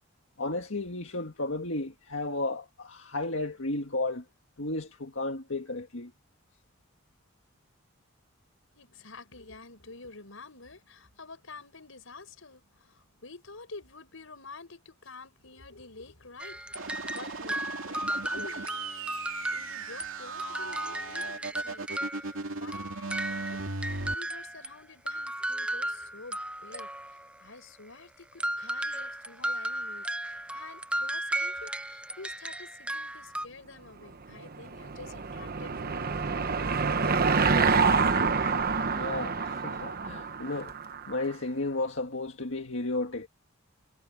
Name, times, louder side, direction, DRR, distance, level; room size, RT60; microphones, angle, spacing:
voice 1, 0.4-4.3 4.6-6.1 38.4-38.6 38.8-40.7 41.1-43.3, left 2 dB, 70° left, 1.9 m, -33 dB
voice 2, 8.7-19.2 19.5-21.8 22.1-36.3, left 3 dB, 90° left, 5.2 m, -49 dB
sound 1, 16.4-20.1 20.4-24.7 25.1-27.4 28.4-33.5, right 1 dB, 5° right, 0.6 m, -35 dB
sound 2, 16.7-24.1, right 3 dB, 85° right, 2.6 m, -38 dB
Car passing by / Engine, 34.3-41.1, right 5 dB, 50° right, 1.1 m, -27 dB
head